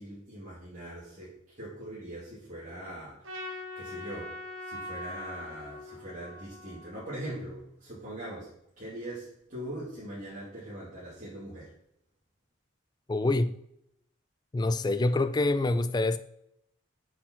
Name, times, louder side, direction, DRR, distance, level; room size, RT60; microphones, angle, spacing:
voice 1, 0.0-8.5 8.8-11.7, right 1 dB, 40° right, 2.4 m, -42 dB
Trumpet, 3.2-7.6, left 2 dB, 80° right, 1.4 m, -42 dB
voice 2, 13.1-13.6 14.5-16.2, left 2 dB, 20° left, 0.3 m, -26 dB
7.5 x 4.5 x 4.3 m
head